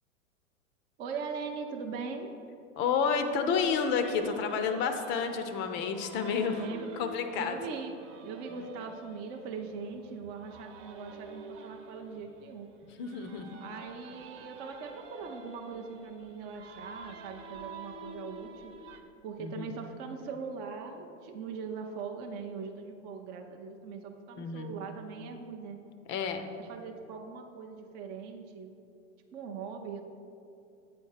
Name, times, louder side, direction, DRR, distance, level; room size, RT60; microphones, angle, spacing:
voice 1, 1.0-2.3 6.6-6.9 7.4-12.7 13.6-18.7 19.2-25.8 26.6-28.7 29.3-30.0, right 5 dB, 25° right, 3 dB, 0.4 m, -41 dB
voice 2, 2.8-6.6 6.9-7.6 13.0-13.5 19.4-19.7 24.4-24.7 26.1-26.5, left 6 dB, 30° left, 7 dB, 0.5 m, -30 dB
sound 1, 3.5-19.0, right 3 dB, 60° right, 1.0 m, -49 dB
8.4 x 4.3 x 6.5 m, 2.7 s
hypercardioid pair, 125°, 40 cm